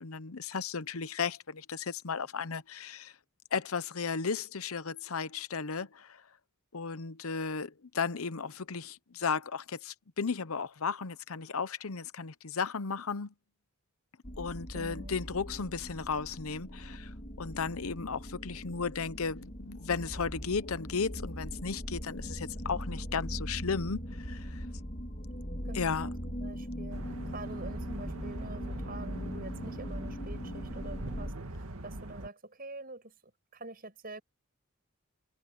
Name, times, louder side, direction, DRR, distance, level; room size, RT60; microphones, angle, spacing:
voice 1, 0.0-3.1 3.5-6.2 6.7-13.3 14.4-24.7 25.7-26.1, left 5 dB, 80° left, 0.8 m, -35 dB
sound 1, 14.2-31.3, equal, 40° left, 3.3 m, -40 dB
voice 2, 14.7-15.2 25.6-33.1 33.5-34.2, right 2 dB, 45° right, 7.6 m, -46 dB
sound 2, 26.9-32.3, right 1 dB, 90° right, 2.1 m, -42 dB
head